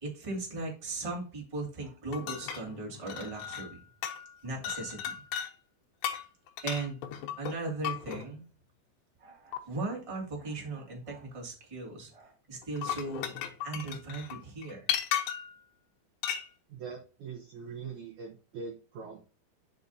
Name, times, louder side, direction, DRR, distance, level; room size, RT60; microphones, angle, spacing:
voice 1, 0.0-3.8 4.4-5.1 6.6-7.0 7.4-8.4 9.2-14.9, right 3 dB, 15° right, -1 dB, 1.2 m, -38 dB
sound 1, 2.1-3.8 4.0-4.3 4.6-5.5 6.0-8.3 9.5-9.6 12.6-15.6 16.2-16.5, left 10 dB, 90° left, 3.1 m, -35 dB
voice 2, 16.7-19.2, right 5 dB, 80° right, 1 dB, 1.7 m, -42 dB
9.0 x 5.6 x 2.8 m, 0.39 s
omnidirectional pair, 4.8 m